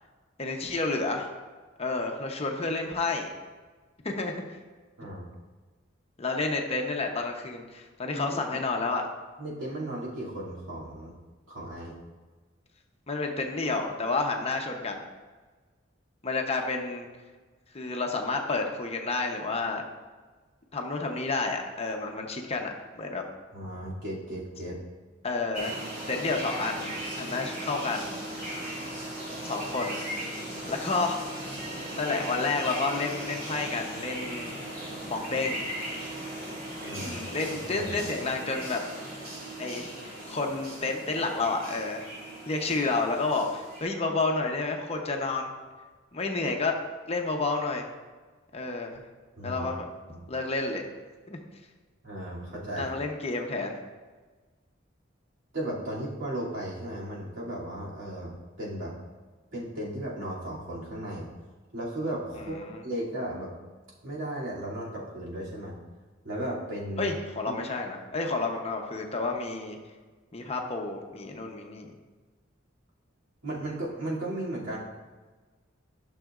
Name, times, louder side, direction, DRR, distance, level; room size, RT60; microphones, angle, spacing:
voice 1, 0.4-1.3 1.8-3.3 4.0-4.3 6.2-9.0 13.1-15.1 16.2-17.1 17.7-19.9 20.7-23.2 25.2-25.8 26.1-26.9 27.2-28.1 29.4-30.0 30.7-31.5 32.0-34.6 35.1-35.7 37.0-38.8 39.6-42.1 42.5-45.5 46.1-46.7 47.1-47.9 48.5-49.0 49.4-49.9 50.3-50.9 51.3-51.4 52.8-53.7 62.4-62.8 67.0-69.8 70.3-71.9, left 3 dB, 30° left, 2 dB, 0.8 m, -30 dB
voice 2, 9.4-11.1 11.5-12.0 23.5-24.8 36.8-37.2 37.7-38.0 49.4-49.6 50.1-50.2 52.0-52.9 55.5-58.3 58.6-58.9 59.5-61.3 61.7-63.5 64.0-65.8 66.2-67.1 67.4-67.6 73.4-74.8, right 1 dB, 75° right, -7 dB, 2.6 m, -35 dB
sound 1, 25.5-43.8, right 1 dB, 50° right, 2.5 m, -38 dB
12.0 x 6.3 x 2.5 m, 1.3 s
head